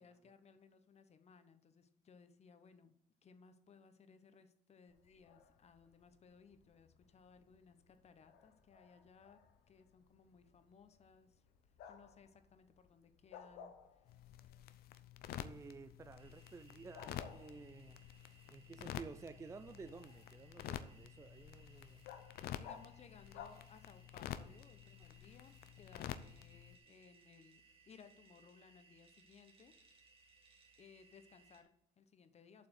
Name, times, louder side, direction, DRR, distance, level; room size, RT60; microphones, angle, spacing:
voice 1, 0.0-2.9 3.2-9.4 9.7-11.4 11.9-14.2 22.5-29.7 30.8-32.7, left 6 dB, 40° left, 10 dB, 1.0 m, -63 dB
Bark, 4.9-24.3, left 7 dB, 80° left, 1.3 m, -60 dB
sound 1, 14.1-26.8, left 11 dB, 65° left, 0.6 m, -50 dB
voice 2, 15.3-18.0 18.5-22.1, right 4 dB, 20° right, 12 dB, 0.4 m, -53 dB
sound 2, 16.2-31.6, right 4 dB, 35° right, 2.1 m, -68 dB
7.7 x 5.7 x 6.5 m, 0.74 s
cardioid pair, 110°, 17 cm